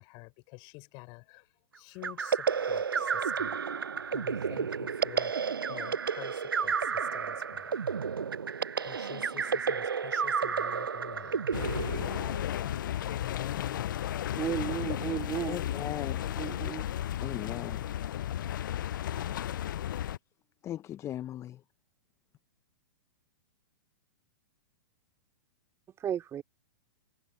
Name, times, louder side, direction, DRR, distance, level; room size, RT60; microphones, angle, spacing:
voice 1, 0.0-1.5 1.7-3.6 4.1-5.3 5.6-7.8 8.8-12.0 13.2-14.1, left 30 dB, 40° left, 6.0 m, -48 dB
sound 1, 2.0-12.6, right 6 dB, 85° right, 0.5 m, -31 dB
sound 2, 11.5-20.2, left 11 dB, 65° left, 0.6 m, -34 dB
voice 2, 14.4-15.6 16.4-16.8 26.0-26.4, right 9 dB, 25° right, 3.1 m, -33 dB
voice 3, 15.5-16.3 17.2-17.8 20.6-21.6, left 12 dB, 25° left, 1.0 m, -38 dB
figure-of-eight pair, 110°, 12 cm